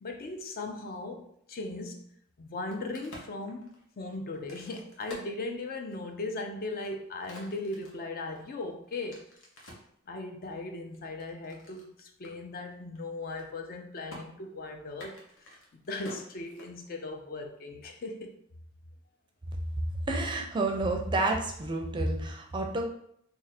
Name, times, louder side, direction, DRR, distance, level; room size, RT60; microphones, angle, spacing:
voice 1, 0.0-2.0 2.4-9.2 10.1-15.1 15.9-18.3, left 2 dB, 45° left, 4 dB, 0.4 m, -38 dB
Crack, 2.5-6.1 6.6-9.9 10.5-11.9 12.2-12.3 12.6-13.0 13.2-13.8 14.1-14.2 14.9-17.1, left 1 dB, 75° left, 1.0 m, -49 dB
voice 2, 20.1-22.9, right 2 dB, 25° right, 2 dB, 0.4 m, -29 dB
2.7 x 2.6 x 4.1 m, 0.70 s
head